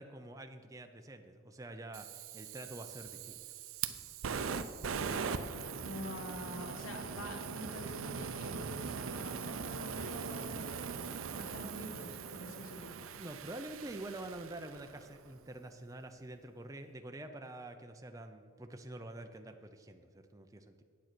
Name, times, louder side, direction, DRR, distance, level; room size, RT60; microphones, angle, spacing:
voice 1, 0.0-3.4 13.2-20.8, right 1 dB, 15° right, 5 dB, 0.5 m, -47 dB
Fire, 1.9-15.1, right 6 dB, 70° right, 0.5 m, -41 dB
voice 2, 5.8-10.8 11.3-12.9, equal, 75° left, 3 dB, 1.7 m, -46 dB
9.1 x 8.2 x 6.0 m, 2.1 s
head